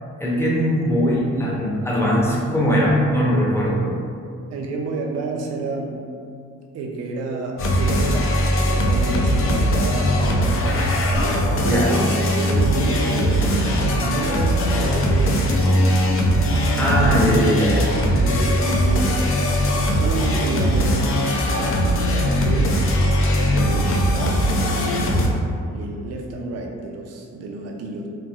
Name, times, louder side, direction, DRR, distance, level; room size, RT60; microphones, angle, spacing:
voice 1, 0.2-3.8 11.6-12.0 16.7-18.0, equal, 10° left, -6 dB, 0.6 m, -20 dB
voice 2, 4.5-6.0 6.7-11.0 11.5-13.5 13.8-16.1 17.0-17.2 18.1-19.2 19.5-21.1 21.5-21.9 22.3-22.8 23.4-25.3 25.7-28.1, right 3 dB, 55° right, 0 dB, 0.4 m, -30 dB
sound 1, 7.6-25.3, equal, 45° left, 0.5 m, -20 dB
2.9 x 2.5 x 2.3 m, 2.3 s
cardioid pair, 90°, 30 cm